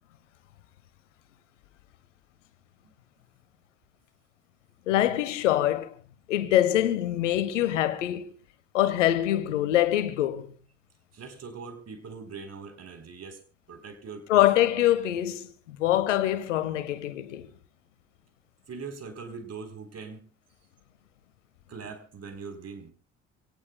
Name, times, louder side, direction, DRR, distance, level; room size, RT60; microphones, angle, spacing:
voice 1, 4.9-5.9 6.3-8.3 8.7-10.5 14.3-17.5, left 13 dB, 80° left, 1.1 m, -24 dB
voice 2, 11.1-13.4 13.7-14.5 18.7-20.3 21.7-22.9, right 5 dB, 45° right, 4.0 m, -41 dB
27.0 x 18.5 x 2.3 m
hypercardioid pair, 55°, 36 cm